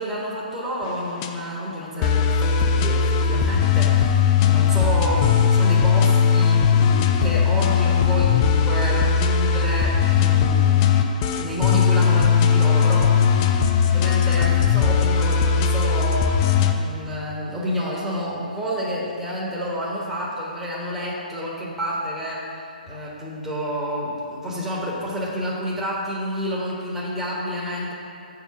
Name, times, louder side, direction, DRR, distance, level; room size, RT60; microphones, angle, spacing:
voice 1, 0.0-11.1 11.3-13.2 13.8-27.9, equal, 5° right, -6 dB, 1.3 m, -29 dB
sound 1, 0.8-1.3 2.0-16.7, left 7 dB, 30° left, 0.5 m, -18 dB
7.4 x 4.8 x 5.8 m, 2.5 s
figure-of-eight pair, 130°, 5 cm